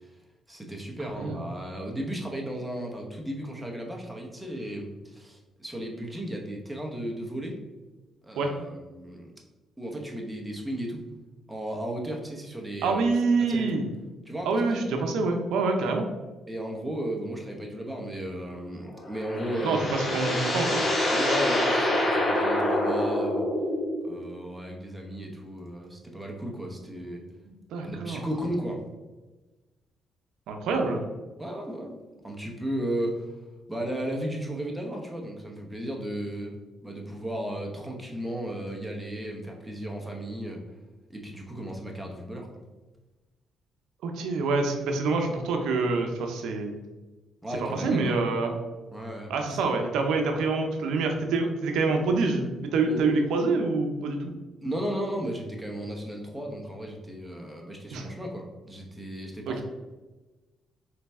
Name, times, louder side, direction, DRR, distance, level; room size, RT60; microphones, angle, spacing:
voice 1, 0.5-7.6 8.2-9.3 9.8-11.0 11.5-13.1 13.4-13.8 14.3-14.8 16.5-20.2 21.1-23.5 24.0-27.2 27.8-28.8 31.4-33.3 33.7-36.6 36.8-40.6 41.1-42.5 47.4-48.2 48.9-49.8 52.8-53.3 54.6-59.6, right 1 dB, 5° right, 0 dB, 0.9 m, -35 dB
voice 2, 12.8-13.9 14.4-16.1 19.6-20.8 27.5-28.2 30.5-31.0 44.0-46.8 47.6-48.5 49.3-54.3 57.9-58.1 59.5-59.6, right 3 dB, 85° right, 4 dB, 0.6 m, -26 dB
sound 1, 18.9-24.1, left 1 dB, 35° left, 1.0 m, -26 dB
4.0 x 3.2 x 3.5 m, 1.2 s
cardioid pair, 90°, 0 cm